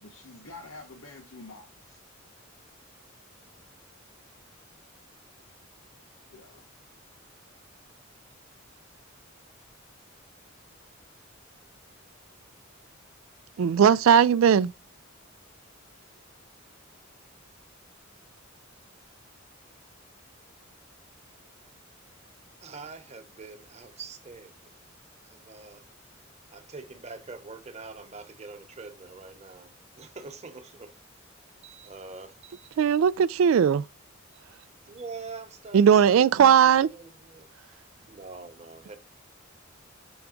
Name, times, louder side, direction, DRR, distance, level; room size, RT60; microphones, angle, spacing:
voice 1, 0.0-2.0 6.3-6.6, left 3 dB, 85° left, 1.2 m, -47 dB
voice 2, 13.6-14.7 32.8-33.8 35.7-36.9, right 8 dB, 80° right, 0.3 m, -18 dB
voice 3, 22.6-24.6 25.2-25.8 26.5-30.9 31.6-32.9 34.3-34.4 34.9-37.5 38.0-39.0, right 4 dB, 35° right, 1.0 m, -44 dB
7.0 x 3.5 x 5.1 m
head